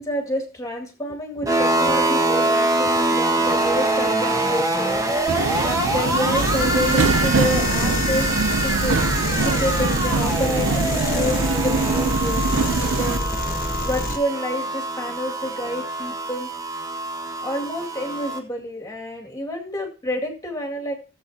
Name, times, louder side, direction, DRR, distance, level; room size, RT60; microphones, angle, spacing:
voice 1, 0.0-5.0 5.6-12.5 12.9-13.4 13.8-16.5 17.4-20.9, left 1 dB, 15° left, 1 dB, 2.3 m, -29 dB
sound 1, 1.5-18.4, right 1 dB, 15° right, 1.6 m, -24 dB
Subway metro underground, 5.3-13.2, right 4 dB, 70° right, 0.6 m, -24 dB
sound 2, 6.3-14.2, left 2 dB, 45° left, 1.4 m, -27 dB
16.5 x 7.9 x 2.8 m, 0.37 s
head